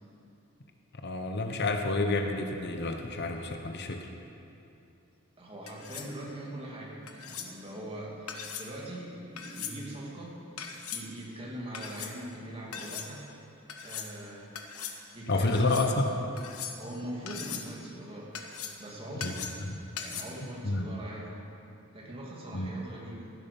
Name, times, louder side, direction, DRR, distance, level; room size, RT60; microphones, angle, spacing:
voice 1, 1.0-4.1 15.3-16.1 19.2-19.3 19.6-19.8 20.6-20.9 22.5-22.7, left 2 dB, 50° left, 5 dB, 1.0 m, -29 dB
voice 2, 5.4-10.4 10.9-13.3 13.8-14.5 15.1-16.1 16.8-18.3 18.8-19.4 20.0-21.4 21.9-23.3, right 1 dB, 25° right, -3 dB, 2.7 m, -41 dB
sound 1, 5.7-6.1 7.1-7.5 8.3-8.7 9.4-9.8 10.6-11.0 11.7-12.1 12.7-13.1 13.7-14.1 14.5-15.0 15.5-15.9 16.4-16.9 17.3-17.7 18.3-18.8 19.2-19.7 20.0-20.2, left 7 dB, 80° left, 1.3 m, -39 dB
16.5 x 11.5 x 5.4 m, 2.7 s
head